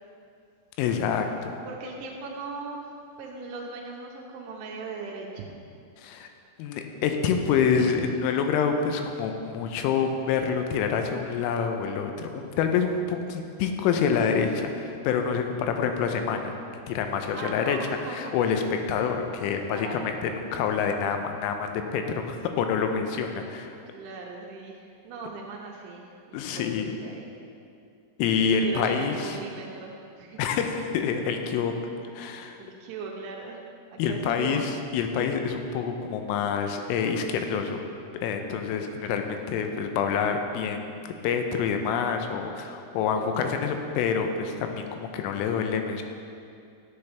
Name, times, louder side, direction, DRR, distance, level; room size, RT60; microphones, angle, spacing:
voice 1, 0.8-1.5 6.0-6.3 6.6-16.5 16.9-17.8 18.1-23.8 26.3-26.9 28.2-29.4 30.4-31.7 32.1-32.6 34.0-37.8 38.2-40.9 41.2-46.0, left 6 dB, 85° left, 5 dB, 3.1 m, -27 dB
voice 2, 1.7-2.9 3.2-5.6 7.8-8.1 17.3-18.3 19.7-20.2 23.9-27.3 28.5-30.4 32.6-33.6 34.1-34.7 43.1-43.4, right 4 dB, 85° right, -1 dB, 2.9 m, -39 dB
13.0 x 7.8 x 3.3 m, 2.5 s
omnidirectional pair, 5.8 m